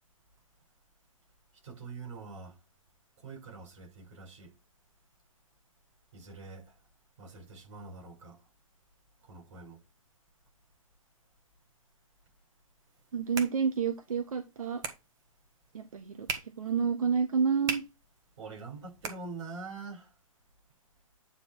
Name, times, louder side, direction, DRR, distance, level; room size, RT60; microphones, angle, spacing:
voice 1, 1.6-2.6 3.2-4.5 6.1-6.8 7.2-8.5 9.2-9.8 18.4-20.1, right 4 dB, 55° right, 6.5 m, -45 dB
sound 1, 12.8-19.8, right 5 dB, 20° right, 1.4 m, -43 dB
voice 2, 13.1-14.8 15.7-17.8, right 6 dB, 80° right, 1.4 m, -29 dB
9.5 x 4.4 x 4.7 m
hypercardioid pair, 150°, 18 cm